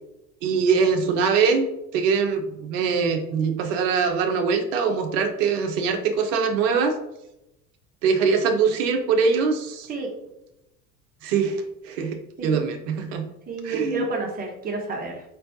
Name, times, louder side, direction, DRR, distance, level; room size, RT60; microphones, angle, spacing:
voice 1, 0.4-1.7 1.9-6.9 8.0-9.9 11.2-13.3 13.6-14.0, right 5 dB, 55° right, 5 dB, 0.8 m, -23 dB
voice 2, 13.5-15.2, right 3 dB, 20° right, 0 dB, 1.1 m, -30 dB
4.4 x 3.2 x 2.7 m, 0.87 s
figure-of-eight pair, 70°, 47 cm